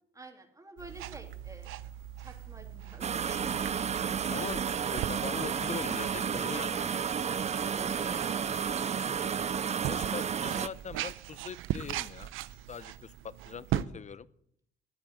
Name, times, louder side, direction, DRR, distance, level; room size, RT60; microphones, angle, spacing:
voice 1, 0.1-1.8 2.2-3.7 7.2-9.3, right 2 dB, 15° right, 3 dB, 2.9 m, -50 dB
sound 1, 0.8-13.8, right 13 dB, 90° right, 0.6 m, -40 dB
sound 2, 3.0-10.7, right 7 dB, 35° right, 0.5 m, -31 dB
voice 2, 4.3-6.9 9.8-12.3 12.7-14.3, left 6 dB, 35° left, 19 dB, 0.6 m, -42 dB
sound 3, 5.4-10.4, left 7 dB, 85° left, 1.8 m, -56 dB
13.5 x 8.6 x 7.7 m, 0.71 s
cardioid pair, 90°, 20 cm